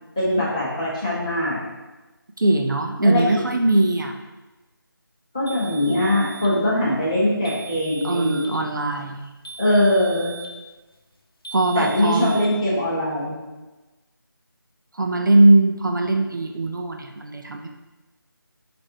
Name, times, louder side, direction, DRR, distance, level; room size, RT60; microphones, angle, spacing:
voice 1, 0.2-1.6 3.0-3.4 5.3-8.5 9.6-10.3 11.7-13.3, left 1 dB, 15° left, -10 dB, 0.9 m, -22 dB
voice 2, 2.4-4.1 8.0-9.2 11.5-12.4 14.9-17.7, right 2 dB, 60° right, 3 dB, 0.4 m, -20 dB
sound 1, 5.5-6.6 7.4-8.6 9.4-10.6 11.4-12.5, right 5 dB, 80° left, 0.7 m, -39 dB
6.2 x 2.6 x 2.8 m, 1.1 s
figure-of-eight pair, 175°, 12 cm